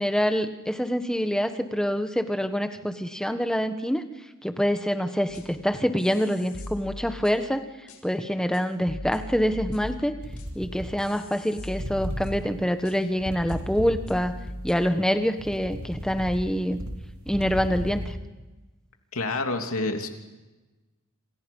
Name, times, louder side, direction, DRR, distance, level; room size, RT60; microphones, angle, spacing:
voice 1, 0.0-4.0 4.4-7.6 8.0-10.1 10.5-14.3 14.6-16.8 17.3-18.1, equal, 5° left, 7 dB, 1.4 m, -26 dB
sound 1, 5.3-5.6 6.0-7.5 7.9-8.0 8.5-8.6 8.9-12.5 12.8-12.9 13.5-13.6 13.8-14.7, left 1 dB, 90° left, 5.7 m, -40 dB
sound 2, 10.2-11.4 11.7-14.4 14.9-18.1, equal, 75° right, 3.4 m, -35 dB
voice 2, 19.1-20.1, left 2 dB, 70° left, 4 dB, 3.0 m, -28 dB
27.5 x 27.5 x 5.5 m, 1.1 s
head